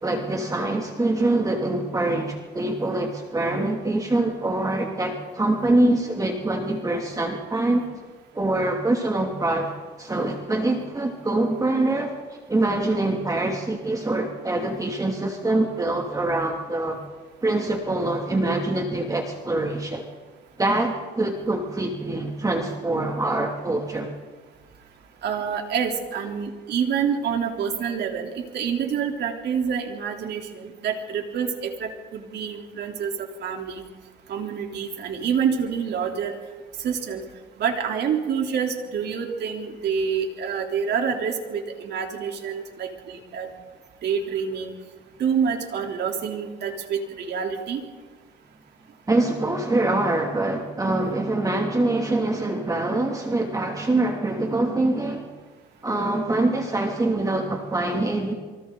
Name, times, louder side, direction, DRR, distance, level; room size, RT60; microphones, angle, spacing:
voice 1, 0.0-7.8 8.3-12.1 12.5-17.0 17.4-20.0 20.6-24.1 49.1-55.3 55.8-58.3, right 2 dB, 15° right, 1 dB, 2.6 m, -24 dB
voice 2, 25.2-33.8 34.3-36.4 36.8-37.2 37.6-43.5 44.0-44.7 45.2-47.8, right 7 dB, 60° right, 2 dB, 3.7 m, -27 dB
28.0 x 24.5 x 4.0 m, 1.4 s
cardioid pair, 110°, 19 cm